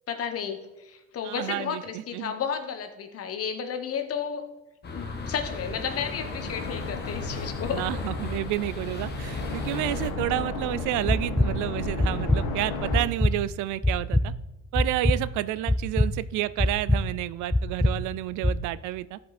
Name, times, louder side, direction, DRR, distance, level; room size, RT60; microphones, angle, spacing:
voice 1, 0.1-4.5 4.9-7.8, left 7 dB, 50° left, 7 dB, 1.2 m, -32 dB
voice 2, 1.2-2.3 7.7-14.3 14.7-19.2, right 15 dB, 80° right, 17 dB, 0.5 m, -30 dB
sound 1, 4.8-10.1, left 2 dB, 35° left, 1.6 m, -35 dB
sound 2, 5.7-13.0, left 3 dB, 85° left, 1.8 m, -34 dB
sound 3, 11.1-11.5 12.0-12.4 12.9-13.3 13.8-14.2 14.7-15.2 15.7-16.1 16.6-17.0 17.5-17.9 18.4-18.6, left 1 dB, 5° left, 0.5 m, -22 dB
13.0 x 5.2 x 4.2 m, 0.98 s
cardioid pair, 105°, 30 cm